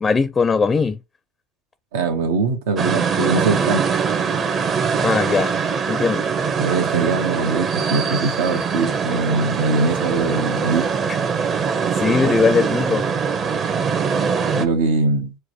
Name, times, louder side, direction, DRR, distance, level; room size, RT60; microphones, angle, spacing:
voice 1, 0.0-1.0 5.0-5.5 5.9-6.3 12.0-13.1, left 4 dB, 25° left, 0.4 m, -19 dB
voice 2, 1.9-3.9 6.6-10.9 14.5-15.4, right 3 dB, 80° right, 1.0 m, -22 dB
sound 1, 2.8-14.6, right 6 dB, 45° right, 0.9 m, -22 dB
4.7 x 2.2 x 4.5 m
hypercardioid pair, 85°, 0 cm